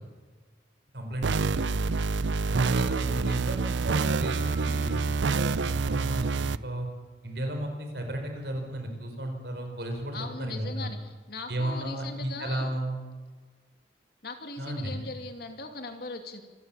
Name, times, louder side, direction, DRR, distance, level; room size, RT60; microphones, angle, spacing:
voice 1, 0.9-1.7 2.5-6.9 7.2-10.9 11.5-13.0 14.6-15.0, right 1 dB, 60° right, 4 dB, 4.8 m, -34 dB
sound 1, 1.2-6.6, right 4 dB, 80° right, 0.6 m, -27 dB
voice 2, 2.7-3.4 10.1-12.7 14.2-16.4, left 3 dB, 55° left, 5 dB, 2.6 m, -40 dB
Keyboard (musical), 4.1-6.5, right 2 dB, 30° right, 6.9 m, -50 dB
26.0 x 15.0 x 7.1 m, 1.4 s
head